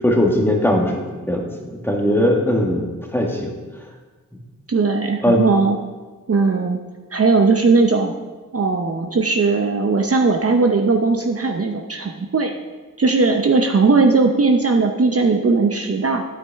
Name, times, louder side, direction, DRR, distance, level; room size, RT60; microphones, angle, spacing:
voice 1, 0.0-3.5 5.2-5.4, left 1 dB, 5° left, 0 dB, 1.6 m, -19 dB
voice 2, 4.7-5.8 6.3-6.8 7.1-8.1 8.5-12.5 13.0-16.2, right 4 dB, 45° right, 3 dB, 0.7 m, -18 dB
9.3 x 8.6 x 3.5 m, 1.3 s
wide cardioid pair, 70°, 34 cm